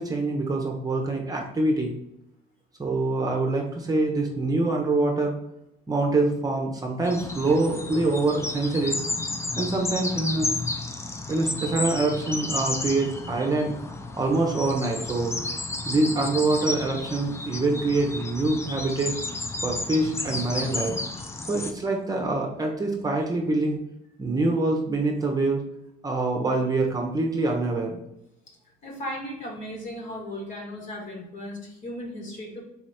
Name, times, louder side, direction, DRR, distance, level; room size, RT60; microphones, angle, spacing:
voice 1, 0.0-1.9 2.8-5.3 5.9-9.0 9.6-10.5 11.3-13.7 14.1-15.4 15.8-19.1 19.6-21.0 21.5-23.8 24.2-25.6 26.0-28.0, right 2 dB, 20° right, 1 dB, 0.9 m, -25 dB
sound 1, 7.0-21.7, left 2 dB, 15° left, 0.5 m, -32 dB
voice 2, 28.8-32.6, equal, 50° left, -1 dB, 1.8 m, -36 dB
4.1 x 3.1 x 4.2 m, 0.83 s
cardioid pair, 110°, 17 cm